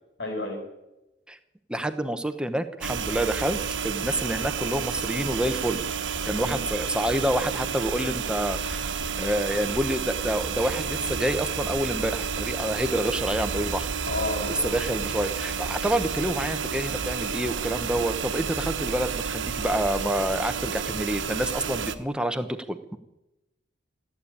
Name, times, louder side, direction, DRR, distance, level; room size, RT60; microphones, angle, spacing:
voice 1, 0.2-0.6 6.4-6.6 14.1-14.8, left 2 dB, 65° left, 2 dB, 4.8 m, -31 dB
voice 2, 1.7-5.8 6.2-8.8 9.2-13.9 14.5-23.0, right 1 dB, 5° right, 9 dB, 0.9 m, -28 dB
sound 1, 2.8-22.0, right 6 dB, 85° right, 1.1 m, -30 dB
14.0 x 8.8 x 9.7 m, 0.95 s
head